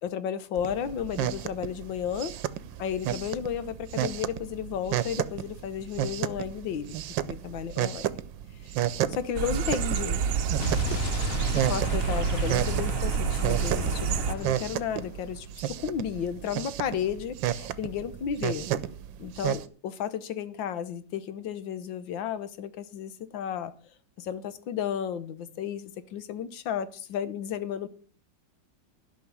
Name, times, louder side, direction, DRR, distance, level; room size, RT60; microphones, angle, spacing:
voice 1, 0.0-2.4 2.8-6.9 7.2-8.1 9.1-10.3 11.5-18.7 19.2-23.7 24.2-27.9, left 8 dB, 90° left, 1.7 m, -33 dB
sound 1, 0.5-19.6, right 11 dB, 85° right, 1.4 m, -33 dB
sound 2, 9.4-14.4, right 8 dB, 60° right, 0.9 m, -28 dB
Explosion, 10.6-15.4, left 7 dB, 55° left, 0.7 m, -35 dB
11.5 x 6.1 x 8.2 m
omnidirectional pair, 2.0 m